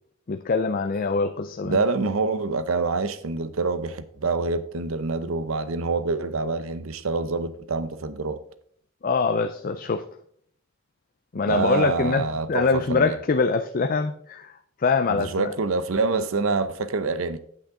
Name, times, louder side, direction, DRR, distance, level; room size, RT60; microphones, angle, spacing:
voice 1, 0.3-1.8 9.0-10.0 11.3-14.5 14.8-15.5, left 4 dB, 40° left, 8 dB, 0.4 m, -24 dB
voice 2, 1.6-8.4 11.5-13.2 15.1-17.4, right 3 dB, 70° right, 12 dB, 0.7 m, -26 dB
8.8 x 7.9 x 3.7 m, 0.63 s
head